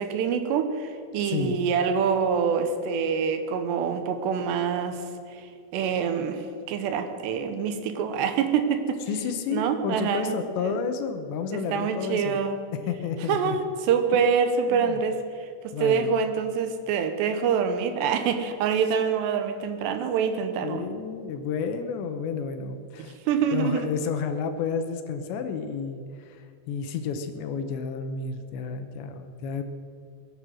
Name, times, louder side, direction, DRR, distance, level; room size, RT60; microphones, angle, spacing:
voice 1, 0.0-5.1 5.3-9.0 9.5-10.8 11.5-12.6 13.3-20.9 23.0-23.9, right 6 dB, 75° right, 7 dB, 3.0 m, -26 dB
voice 2, 1.3-1.6 9.1-12.4 12.9-13.6 14.1-14.2 14.7-15.0 15.7-16.1 20.6-23.2 23.5-26.4 26.7-29.6, left 6 dB, 80° left, 7 dB, 3.2 m, -31 dB
21.5 x 9.4 x 6.3 m, 2.3 s
omnidirectional pair, 5.1 m